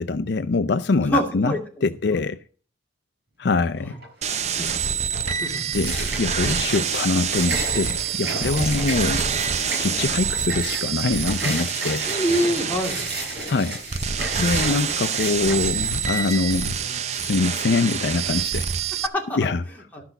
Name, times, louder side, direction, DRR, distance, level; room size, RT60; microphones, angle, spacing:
voice 1, 0.0-1.5 1.8-2.4 3.4-4.0 5.7-9.2 9.8-12.1 13.5-13.8 14.4-18.7 19.4-19.6, left 3 dB, 60° left, 0.5 m, -24 dB
voice 2, 1.0-1.6 3.8-3.9 4.6-4.7 5.4-5.6 8.4-8.6 12.1-13.0 19.0-19.5 19.9-20.0, equal, 10° left, 2.6 m, -25 dB
sound 1, 3.9-4.3 4.7-16.3, right 2 dB, 60° right, 8.0 m, -32 dB
sound 2, 4.2-19.1, right 7 dB, 35° right, 0.6 m, -27 dB
12.5 x 6.0 x 7.0 m
head